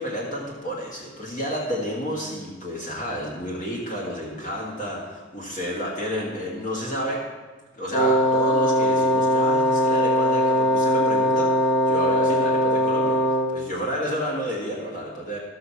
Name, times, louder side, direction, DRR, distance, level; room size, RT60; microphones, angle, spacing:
voice 1, 0.0-7.2 7.8-15.4, equal, 40° left, -4 dB, 1.8 m, -30 dB
Wind instrument woodwind instrument, 7.9-13.6, equal, 80° left, 2.4 m, -20 dB
14.5 x 6.4 x 5.8 m, 1.3 s
head